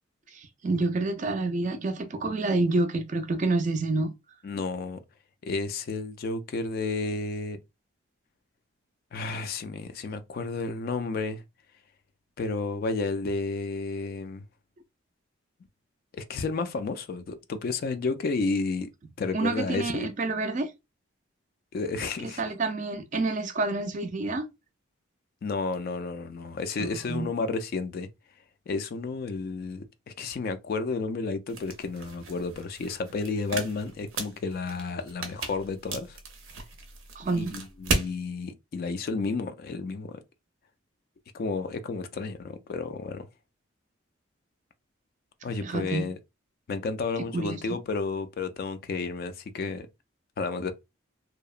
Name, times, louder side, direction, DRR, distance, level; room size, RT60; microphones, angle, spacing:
voice 1, 0.3-4.1 19.3-20.7 22.2-24.5 26.8-27.3 37.2-37.5 45.6-46.0 47.3-47.6, right 3 dB, 40° right, 0.4 m, -28 dB
voice 2, 4.4-5.0 5.4-7.6 9.1-11.4 12.4-14.4 16.1-18.9 19.2-20.1 21.7-22.4 25.4-28.1 28.7-36.2 37.3-40.2 41.3-43.3 45.4-46.2 46.7-49.9 50.4-50.7, left 3 dB, 50° left, 0.3 m, -31 dB
sound 1, 31.5-38.1, right 3 dB, 90° right, 0.6 m, -35 dB
2.8 x 2.0 x 2.3 m
head